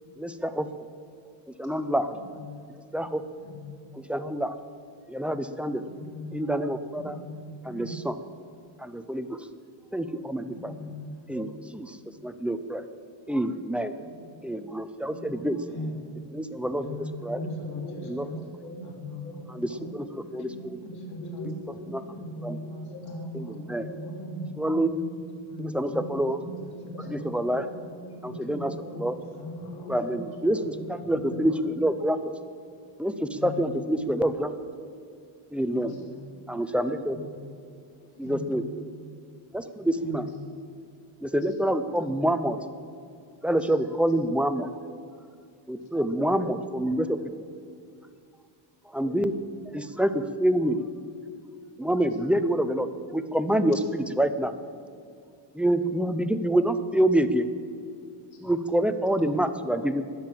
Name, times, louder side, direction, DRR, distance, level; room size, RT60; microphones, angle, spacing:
voice 1, 0.2-0.7 1.6-2.1 2.9-3.2 4.1-4.6 5.1-5.8 6.3-7.2 7.6-8.2 8.8-9.3 9.9-10.7 11.3-12.0 12.2-12.8 13.3-13.9 14.4-15.6 16.3-17.0 17.2-17.4 18.1-18.3 19.5-20.5 21.9-22.0 22.4-22.6 23.7-23.9 24.6-24.9 25.6-26.4 27.1-27.7 28.2-28.7 29.0-29.2 29.9-32.3 33.0-34.5 35.5-36.0 36.5-37.2 38.2-38.9 39.5-40.3 41.2-42.6 43.4-44.7 45.7-47.2 48.9-49.3 49.7-50.8 51.8-54.5 55.5-57.5 58.4-60.0, right 1 dB, 5° right, 10 dB, 0.4 m, -27 dB
voice 2, 2.1-2.6 3.4-3.8 6.0-6.4 6.9-8.0 10.5-11.1 15.7-15.9 16.8-18.3 18.8-19.9 20.8-21.5 22.1-24.5 25.4-27.3 28.2-29.0 29.3-30.0 30.4-31.6 33.4-33.8 35.8-36.1 37.1-37.4 38.2-38.7 39.9-40.4 58.4-58.5, left 2 dB, 50° left, 0 dB, 3.2 m, -40 dB
voice 3, 3.0-3.5 5.7-6.1 7.1-7.4 13.8-14.1 15.0-15.4 17.3-18.0 18.3-18.8 19.2-20.0 20.3-20.6 20.9-21.9 22.6-25.1 25.9-28.5 28.8-30.5 31.1-31.8 35.6-36.0 38.0-38.2 43.6-43.7 58.3-58.4, right 1 dB, 65° left, -3 dB, 4.6 m, -43 dB
20.0 x 7.6 x 7.5 m, 2.3 s
cardioid pair, 160°, 48 cm